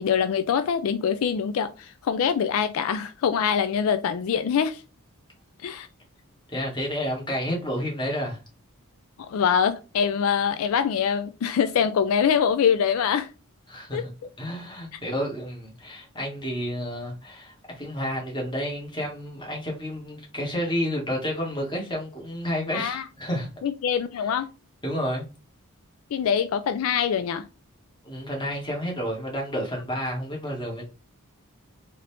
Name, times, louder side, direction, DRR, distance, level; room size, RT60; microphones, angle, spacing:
voice 1, 0.0-4.8 5.6-5.9 9.2-13.3 13.9-14.1 14.9-15.0 22.7-23.0 23.6-24.5 26.1-27.5, left 7 dB, 75° left, 0.3 m, -24 dB
voice 2, 6.5-8.4 13.7-14.0 14.4-23.5 24.8-25.2 28.0-30.8, equal, 20° left, 1.5 m, -30 dB
3.8 x 2.8 x 3.4 m
head